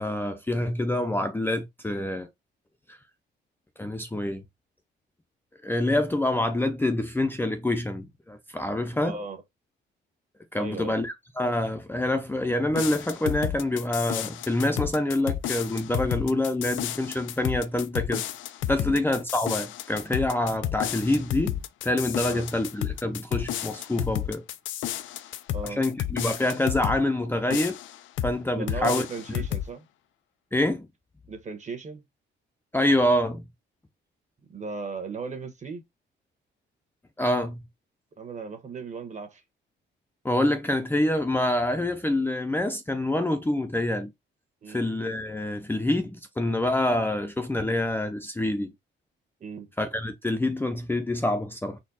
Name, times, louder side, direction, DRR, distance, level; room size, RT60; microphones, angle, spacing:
voice 1, 0.0-2.3 2.9-3.0 3.8-4.4 5.6-9.2 10.5-18.2 18.7-24.4 25.6-27.8 28.2-29.1 30.5-30.9 32.7-33.4 37.2-37.6 40.2-44.1 44.7-48.7 49.8-51.8, left 1 dB, 10° left, 0.6 m, -26 dB
voice 2, 9.0-9.4 10.6-11.0 18.8-19.0 22.2-22.5 25.5-25.8 28.5-29.9 31.3-32.0 34.5-35.8 38.2-39.4 44.6-44.9 49.4-49.7, right 4 dB, 35° right, 1.3 m, -36 dB
sound 1, 12.7-27.0 27.5-28.4 28.7-29.7, left 12 dB, 75° left, 0.5 m, -32 dB
4.3 x 2.3 x 4.1 m
cardioid pair, 90°, 20 cm